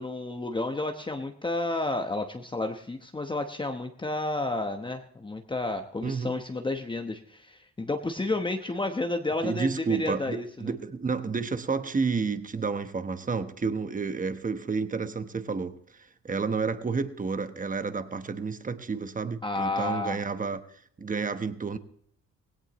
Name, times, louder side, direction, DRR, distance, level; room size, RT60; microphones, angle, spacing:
voice 1, 0.0-10.7 19.4-20.2, left 2 dB, 15° left, 1.0 m, -31 dB
voice 2, 6.0-6.3 9.4-15.8 16.2-20.6 21.0-21.8, right 4 dB, 25° right, 1.1 m, -30 dB
18.0 x 17.0 x 3.1 m
cardioid pair, 90°, 30 cm